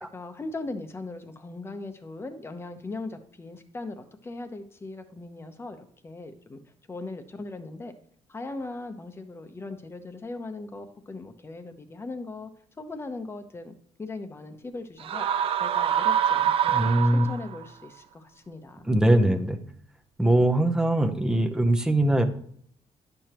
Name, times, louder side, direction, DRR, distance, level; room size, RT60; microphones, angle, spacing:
voice 1, 0.1-6.6 6.9-7.9 8.3-12.5 12.8-15.3 15.6-18.9, left 2 dB, 20° left, 8 dB, 0.9 m, -39 dB
sound 1, 15.0-17.6, right 9 dB, 50° right, 0.5 m, -25 dB
voice 2, 16.7-17.3 18.9-19.6 20.2-22.2, right 1 dB, 5° right, 5 dB, 0.7 m, -21 dB
10.5 x 6.7 x 3.0 m, 0.63 s
cardioid pair, 130°, 12 cm